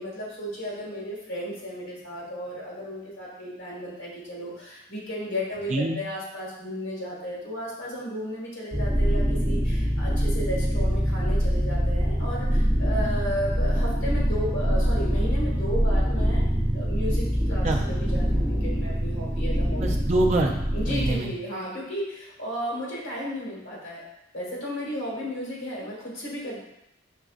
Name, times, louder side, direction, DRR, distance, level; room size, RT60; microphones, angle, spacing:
voice 1, 0.0-16.4 16.7-19.9 20.7-24.0 24.3-26.6, equal, 70° left, -4 dB, 1.5 m, -34 dB
voice 2, 5.7-6.0 17.6-17.8 19.8-20.6 20.9-21.3, right 2 dB, 35° right, 1 dB, 0.5 m, -25 dB
sound 1, 8.7-21.1, equal, 10° right, 0.8 m, -24 dB
5.0 x 3.5 x 2.4 m, 0.83 s
head